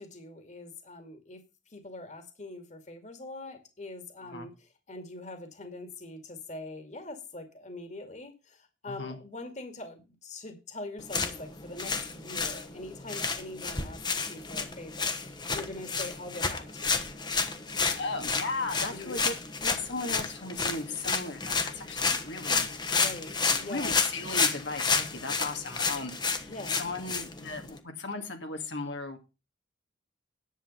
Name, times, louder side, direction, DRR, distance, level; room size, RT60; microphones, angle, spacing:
voice 1, 0.0-1.4 1.7-17.1 18.9-19.2 22.9-24.0 26.5-26.8, left 2 dB, 40° left, 7 dB, 2.3 m, -43 dB
voice 2, 8.9-9.2 17.7-22.7 23.5-29.2, left 3 dB, 80° left, 4 dB, 2.1 m, -37 dB
sound 1, 11.0-27.8, left 4 dB, 25° left, 1.2 m, -31 dB
10.5 x 7.9 x 5.5 m, 0.29 s
head